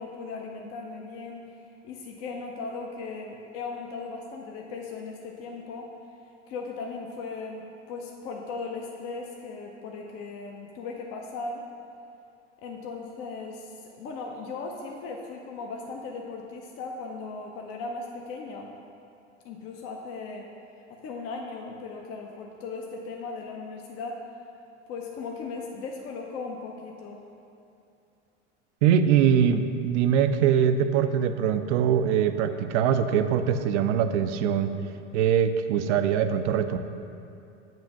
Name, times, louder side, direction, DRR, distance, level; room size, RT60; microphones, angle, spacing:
voice 1, 0.0-1.5 1.8-5.9 6.5-11.6 12.6-18.7 19.4-20.5 20.9-24.3 24.9-27.2, left 4 dB, 40° left, 0 dB, 0.6 m, -37 dB
voice 2, 28.8-34.7 35.1-36.8, right 8 dB, 70° right, 10 dB, 0.5 m, -22 dB
7.6 x 2.5 x 5.7 m, 2.6 s
hypercardioid pair, 100°, 37 cm